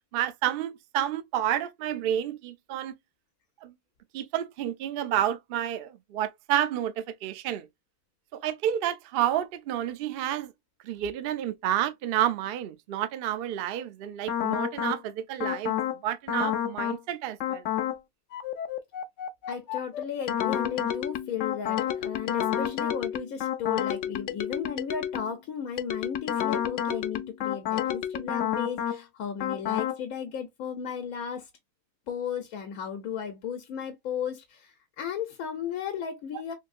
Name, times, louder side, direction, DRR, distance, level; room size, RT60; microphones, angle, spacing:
voice 1, 0.1-2.9 3.6-3.7 4.1-7.7 8.3-10.5 10.8-15.8 16.0-17.6, right 11 dB, 70° right, 0.5 m, -30 dB
sound 1, 14.3-15.0 15.4-16.0 16.3-17.0 17.4-18.0 18.3-25.4 25.8-29.0 29.4-30.0, left 10 dB, 65° left, 0.8 m, -30 dB
voice 2, 19.5-31.5 32.1-36.5, left 7 dB, 85° left, 1.2 m, -35 dB
3.7 x 2.7 x 2.4 m
omnidirectional pair, 1.5 m